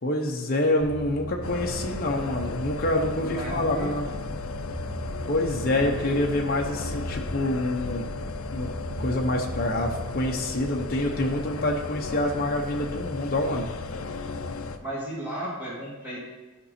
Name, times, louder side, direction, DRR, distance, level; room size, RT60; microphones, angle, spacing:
voice 1, 0.0-4.1 5.3-8.1 8.5-8.7 9.0-13.7, left 1 dB, 45° left, 0 dB, 0.8 m, -26 dB
sound 1, 0.8-10.3, right 2 dB, 85° right, 0.9 m, -39 dB
sound 2, 1.4-14.8, left 4 dB, 80° left, 0.6 m, -35 dB
voice 2, 3.2-4.4 14.8-16.2, right 1 dB, 10° right, -9 dB, 2.7 m, -34 dB
13.0 x 5.3 x 4.3 m, 1.2 s
head